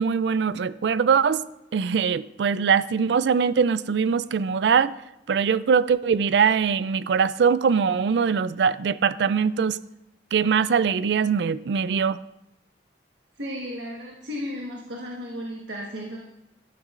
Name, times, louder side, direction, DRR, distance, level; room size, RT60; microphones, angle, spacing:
voice 1, 0.0-1.4 1.7-4.9 5.3-9.8 10.3-12.2, right 6 dB, 70° right, 0.4 m, -22 dB
voice 2, 13.4-16.2, equal, 90° right, 1.4 m, -34 dB
12.5 x 12.0 x 2.5 m
head